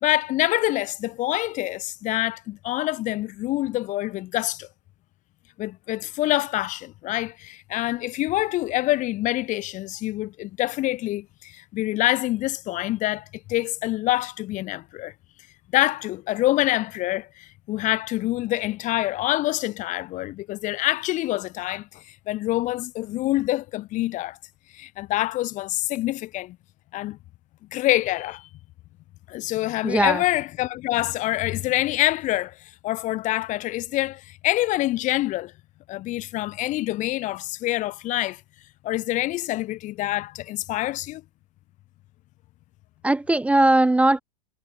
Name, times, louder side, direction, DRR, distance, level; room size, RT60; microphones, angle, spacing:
voice 1, 0.0-4.7 5.6-15.1 15.7-24.4 24.7-26.6 26.9-27.2 27.7-28.5 29.3-35.5 35.9-38.4 38.8-41.2, left 16 dB, 40° left, 1.1 m, -26 dB
voice 2, 29.8-30.2 43.0-44.2, right 2 dB, 5° right, 0.9 m, -19 dB
hypercardioid pair, 100°, 20 cm